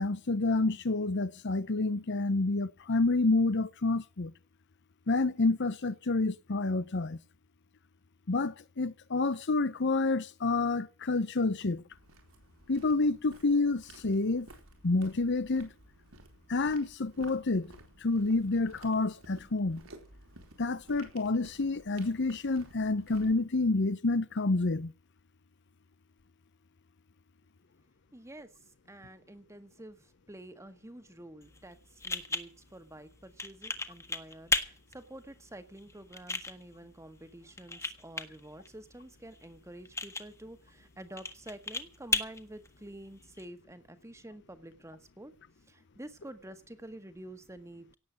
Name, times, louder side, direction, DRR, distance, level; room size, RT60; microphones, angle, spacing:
voice 1, 0.0-4.3 5.1-7.2 8.3-11.8 12.7-14.5 14.8-15.7 16.5-17.7 18.0-19.8 20.6-24.9, left 3 dB, 60° left, 0.8 m, -28 dB
sound 1, 11.9-23.4, right 2 dB, 80° right, 4.3 m, -55 dB
voice 2, 28.1-28.5 28.9-31.8 32.0-45.3 45.7-47.9, right 1 dB, 15° right, 1.7 m, -49 dB
sound 2, 31.4-43.4, left 3 dB, 15° left, 1.5 m, -38 dB
17.5 x 8.0 x 8.0 m
head